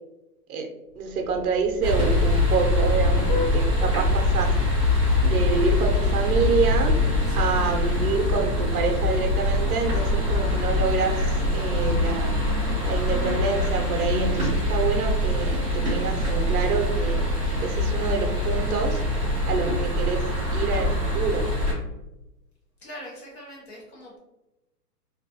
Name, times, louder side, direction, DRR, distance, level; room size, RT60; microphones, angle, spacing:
Vehicle horn car horn honking, 0.9-16.3, left 1 dB, 80° left, 0.5 m, -39 dB
voice 1, 1.0-4.6 5.2-7.0 7.3-12.3 12.9-17.2 17.6-19.0 19.5-21.5, right 4 dB, 65° right, 3 dB, 0.6 m, -27 dB
sound 1, 1.8-21.7, left 1 dB, 20° right, 0.6 m, -23 dB
voice 2, 22.8-24.2, equal, 40° left, -4 dB, 0.8 m, -42 dB
2.3 x 2.2 x 2.6 m, 0.96 s
hypercardioid pair, 175°, 48 cm